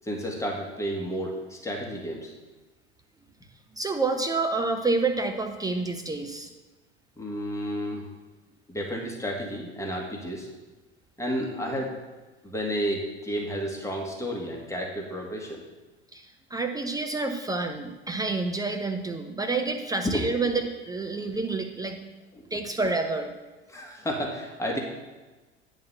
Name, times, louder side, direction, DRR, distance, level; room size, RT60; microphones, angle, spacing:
voice 1, 0.0-2.3 7.2-8.1 8.7-10.5 11.2-12.0 12.4-15.6 20.0-20.5 21.1-21.2 22.3-22.4 23.7-24.8, equal, 10° left, -1 dB, 1.7 m, -31 dB
voice 2, 3.8-6.5 16.1-22.0 22.5-23.3, right 3 dB, 10° right, 5 dB, 0.6 m, -28 dB
9.3 x 4.0 x 6.7 m, 1.2 s
figure-of-eight pair, 75°, 34 cm